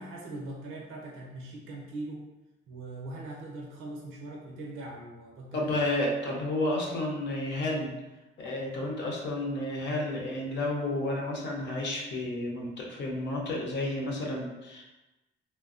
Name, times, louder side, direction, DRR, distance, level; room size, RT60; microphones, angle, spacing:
voice 1, 0.0-2.3 2.7-5.7, right 2 dB, 85° right, -2 dB, 0.6 m, -41 dB
voice 2, 5.5-7.9 8.4-14.9, left 1 dB, 60° left, -1 dB, 0.8 m, -31 dB
3.1 x 2.2 x 2.4 m, 1.0 s
cardioid pair, 90°, 20 cm